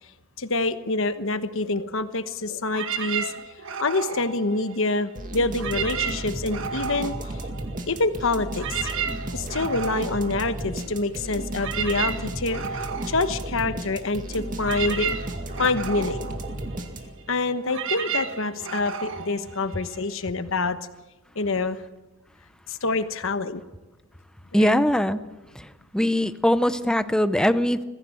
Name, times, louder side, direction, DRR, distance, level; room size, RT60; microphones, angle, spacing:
voice 1, 0.4-3.3 3.8-7.1 7.9-8.9 9.3-12.6 13.1-15.1 15.6-16.3 17.3-20.8 21.3-21.8 22.7-23.6 24.6-24.8, left 3 dB, 60° left, 11 dB, 1.2 m, -26 dB
sound 1, 2.7-5.1 5.5-8.0 8.3-20.3, right 7 dB, 60° right, 1.6 m, -33 dB
sound 2, 5.1-17.4, right 1 dB, 40° right, 2.2 m, -34 dB
voice 2, 24.5-25.2 25.5-27.8, equal, 5° left, 12 dB, 0.7 m, -22 dB
22.0 x 15.5 x 7.7 m, 1.1 s
head